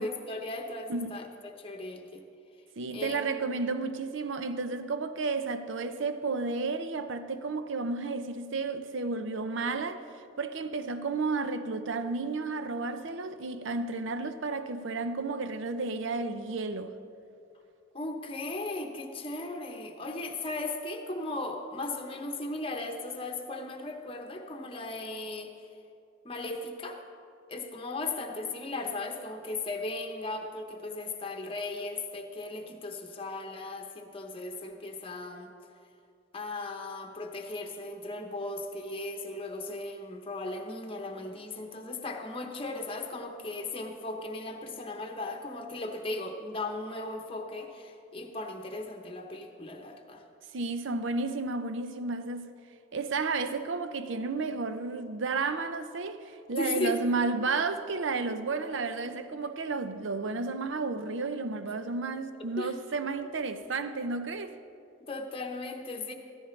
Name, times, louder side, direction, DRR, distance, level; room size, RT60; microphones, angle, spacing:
voice 1, 0.0-2.2 2.9-3.3 17.9-25.5 26.2-27.0 27.5-35.5 36.3-50.2 56.6-57.2 59.0-59.5 62.6-62.7 65.0-66.1, left 2 dB, 25° left, 0.9 m, -37 dB
voice 2, 0.9-1.2 2.8-10.1 10.4-17.0 50.5-52.5 52.9-64.6, right 3 dB, 65° right, 0.6 m, -32 dB
14.5 x 13.5 x 3.2 m
head